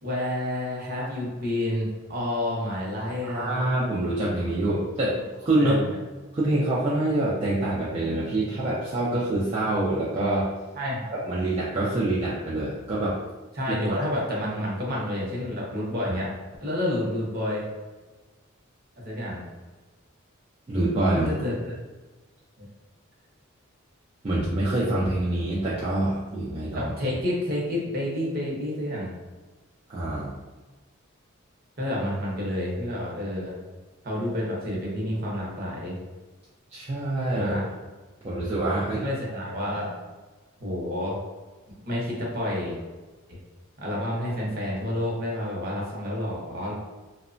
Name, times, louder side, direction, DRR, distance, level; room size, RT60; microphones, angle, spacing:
voice 1, 0.0-3.6 5.6-6.0 10.8-11.1 13.6-16.3 16.6-17.7 19.0-19.4 21.1-21.8 22.6-22.7 26.7-29.1 31.8-33.6 34.0-36.0 37.4-37.6 39.0-39.9 40.6-41.2 41.8-42.8 43.3-43.4 43.8-46.7, left 1 dB, 45° right, -3 dB, 0.7 m, -29 dB
voice 2, 3.2-5.8 6.3-10.5 11.1-13.2 13.7-14.0 16.0-16.1 20.7-21.3 24.2-26.9 29.9-30.3 36.7-37.5 38.2-39.0, right 1 dB, 30° right, -7 dB, 0.4 m, -26 dB
2.8 x 2.1 x 2.5 m, 1.2 s
head